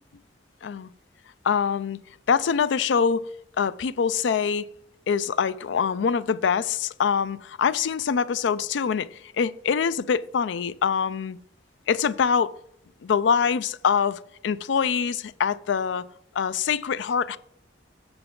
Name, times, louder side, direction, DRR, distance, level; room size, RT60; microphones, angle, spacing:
voice 1, 1.4-2.0 2.3-3.2 3.6-4.7 5.1-11.4 11.9-12.5 13.0-16.0 16.3-17.4, left 6 dB, 80° left, 0.4 m, -24 dB
7.8 x 6.8 x 3.8 m
head